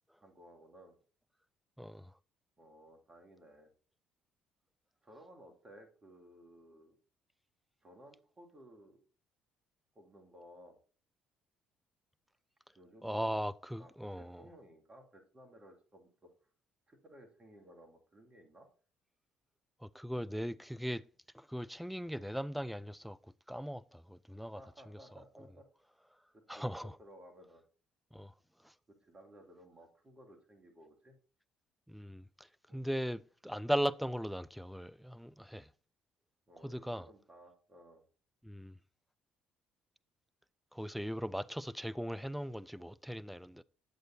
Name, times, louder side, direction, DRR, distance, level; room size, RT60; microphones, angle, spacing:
voice 1, 0.2-1.0 2.6-3.7 5.0-7.0 7.8-9.0 9.9-10.8 12.7-13.3 13.8-13.9 14.2-16.3 16.9-18.7 24.5-25.6 26.3-27.6 28.9-31.2 32.7-32.9 36.5-38.0, equal, 30° right, 2.3 m, -57 dB
voice 2, 1.8-2.1 13.0-14.5 19.8-21.0 21.3-24.6 24.9-25.0 26.5-27.0 28.1-28.3 28.6-28.7 31.9-35.7 36.6-37.1 38.4-38.8 40.7-43.6, equal, ahead, 0.4 m, -39 dB
9.3 x 7.8 x 2.7 m
hypercardioid pair, 50°, 3 cm